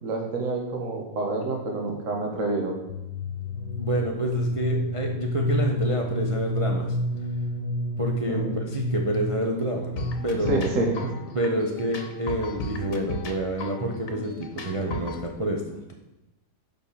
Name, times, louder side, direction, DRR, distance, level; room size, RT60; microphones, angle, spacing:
voice 1, 0.0-2.7 8.3-8.6 10.5-10.9, right 2 dB, 50° right, 1 dB, 1.8 m, -27 dB
sound 1, 2.9-10.6, left 1 dB, 85° left, 1.5 m, -29 dB
voice 2, 3.8-7.0 8.0-10.7 11.3-15.9, right 1 dB, 30° right, 1 dB, 0.6 m, -28 dB
sound 2, 10.0-15.2, left 2 dB, 60° left, 1.4 m, -36 dB
6.9 x 5.4 x 6.9 m, 0.97 s
omnidirectional pair, 1.7 m